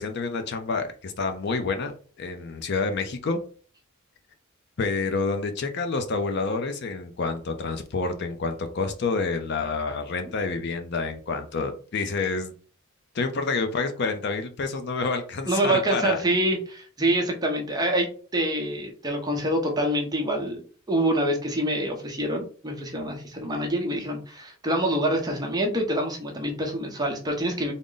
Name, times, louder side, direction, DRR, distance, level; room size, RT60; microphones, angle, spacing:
voice 1, 0.0-3.4 4.8-12.5 13.1-16.2, left 4 dB, 55° left, 0.5 m, -28 dB
voice 2, 15.4-27.7, right 1 dB, 20° right, 0.7 m, -26 dB
3.7 x 2.1 x 3.8 m
head